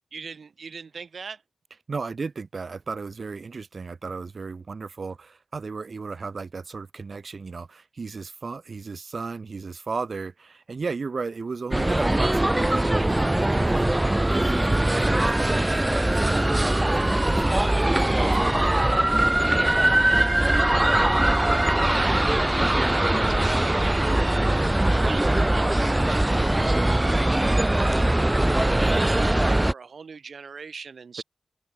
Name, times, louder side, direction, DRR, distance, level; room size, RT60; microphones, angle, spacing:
voice 1, 0.1-1.4 21.8-22.6 23.0-24.1 24.4-28.3 28.7-31.2, right 5 dB, 85° right, 5.8 m, -41 dB
voice 2, 1.9-18.8 28.8-29.1, right 4 dB, 65° right, 1.5 m, -35 dB
sound 1, 11.7-29.7, right 1 dB, 20° right, 0.5 m, -21 dB
sound 2, 15.3-28.3, equal, 5° right, 4.0 m, -41 dB
open air
wide cardioid pair, 75°, 0 cm